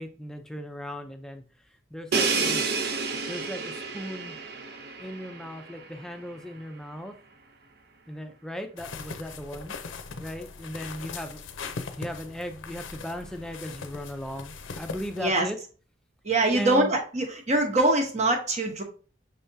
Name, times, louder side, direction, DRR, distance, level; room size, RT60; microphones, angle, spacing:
voice 1, 0.0-1.4 1.9-2.6 3.3-4.4 5.0-7.1 8.1-9.7 10.1-11.4 12.0-15.6 16.5-16.9, equal, 5° left, 6 dB, 0.5 m, -37 dB
Crash cymbal, 2.1-5.9, right 4 dB, 55° right, 0.6 m, -29 dB
sound 1, 8.8-15.3, left 4 dB, 85° left, 0.6 m, -40 dB
voice 2, 16.2-18.8, right 2 dB, 35° right, 2 dB, 0.9 m, -23 dB
5.6 x 3.4 x 2.7 m, 0.37 s
head